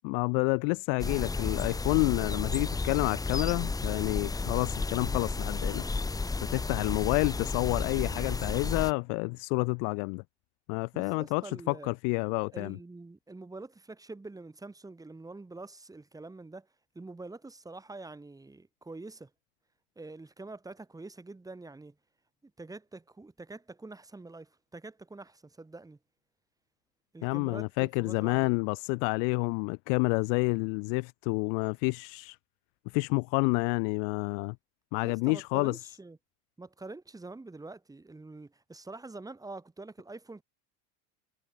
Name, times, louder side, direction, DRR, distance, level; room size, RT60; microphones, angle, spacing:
voice 1, 0.0-5.8 6.5-10.2 10.7-12.8 27.2-32.4 32.9-34.5 34.9-35.8, left 40 dB or more, 70° left, 1.4 m, -29 dB
sound 1, 1.0-8.9, left 3 dB, 10° left, 1.3 m, -32 dB
voice 2, 10.9-11.9 12.5-16.7 16.9-19.3 19.9-21.9 22.4-26.0 27.1-28.6 35.0-36.2 36.6-40.4, right 3 dB, 10° right, 5.1 m, -46 dB
supercardioid pair, 115°, 32 cm